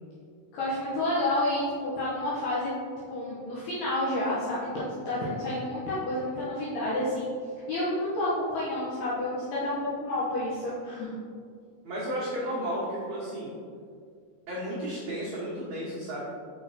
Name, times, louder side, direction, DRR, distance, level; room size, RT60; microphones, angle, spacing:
voice 1, 0.5-2.7 3.1-7.3 7.7-11.1, left 1 dB, 70° left, -9 dB, 2.5 m, -30 dB
voice 2, 11.8-13.5 14.5-16.2, equal, 85° right, -9 dB, 1.6 m, -33 dB
6.5 x 6.3 x 2.8 m, 2.2 s
omnidirectional pair, 5.4 m